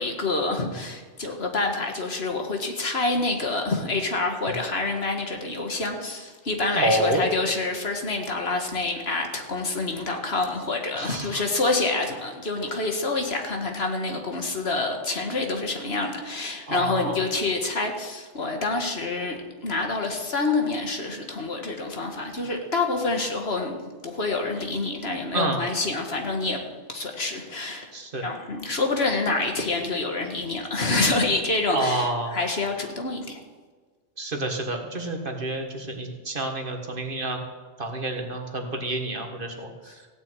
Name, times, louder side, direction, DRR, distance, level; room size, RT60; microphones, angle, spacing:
voice 1, 0.0-23.8 24.0-26.6 26.9-27.9 28.2-32.1 32.3-33.4, left 3 dB, 65° left, 3 dB, 1.9 m, -27 dB
voice 2, 6.8-7.3 10.9-11.4 16.7-17.2 25.3-25.6 27.9-28.3 31.7-32.4 34.2-37.4 37.8-40.1, right 2 dB, 50° right, 3 dB, 1.9 m, -28 dB
16.0 x 6.3 x 9.1 m, 1.4 s
omnidirectional pair, 1.1 m